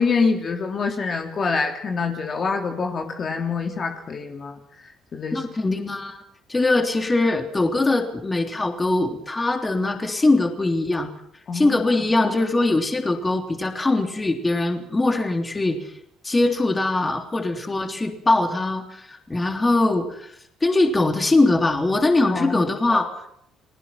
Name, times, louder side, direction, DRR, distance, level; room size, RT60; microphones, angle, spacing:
voice 1, 0.0-4.6 5.1-5.4 11.5-11.9 22.3-22.7, left 4 dB, 40° left, 3 dB, 3.2 m, -25 dB
voice 2, 5.3-6.2 6.5-11.1 11.5-15.8 16.2-20.3 20.6-23.2, left 2 dB, 20° left, 4 dB, 3.5 m, -22 dB
30.0 x 20.0 x 6.0 m, 0.71 s
cardioid pair, 100°, 0 cm